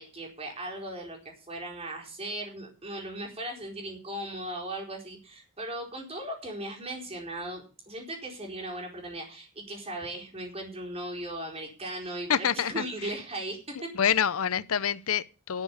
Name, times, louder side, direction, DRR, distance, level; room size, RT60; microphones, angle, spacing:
voice 1, 0.0-13.9, right 1 dB, 30° right, 4.4 m, -38 dB
voice 2, 12.3-12.8 13.7-15.6, left 8 dB, 85° left, 0.7 m, -27 dB
11.5 x 7.2 x 8.4 m
head